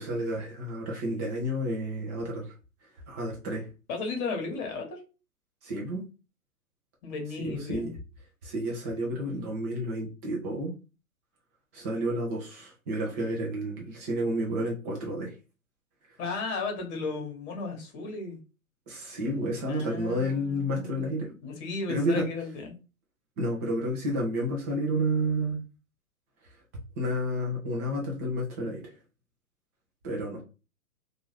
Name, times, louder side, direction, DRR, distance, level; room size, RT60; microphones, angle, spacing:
voice 1, 0.0-2.5 3.1-3.7 5.6-6.0 7.4-7.9 8.4-10.7 11.7-15.3 18.9-21.3 21.9-22.3 23.4-25.6 27.0-28.9 30.0-30.4, equal, 10° right, 0.4 m, -30 dB
voice 2, 3.9-5.0 7.0-7.9 16.2-18.4 19.7-21.1 21.4-22.8, left 4 dB, 30° left, 1.1 m, -35 dB
2.6 x 2.4 x 3.2 m
figure-of-eight pair, 120°, 43 cm